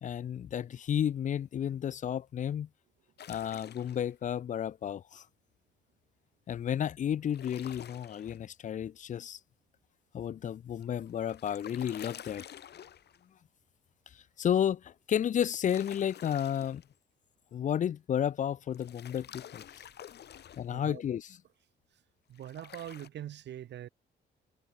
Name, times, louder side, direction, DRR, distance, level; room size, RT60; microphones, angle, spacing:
voice 1, 0.0-2.7 3.3-5.2 6.5-9.4 10.1-12.4 14.4-16.8 17.5-19.6 20.6-21.4, left 9 dB, 40° left, 0.4 m, -32 dB
sound 1, 3.2-4.1 7.2-8.4 10.8-13.2 15.4-16.9 18.7-20.7 22.4-23.1, left 10 dB, 55° left, 1.2 m, -49 dB
voice 2, 20.7-21.0 22.3-23.9, right 11 dB, 60° right, 0.8 m, -43 dB
cardioid pair, 90°, 20 cm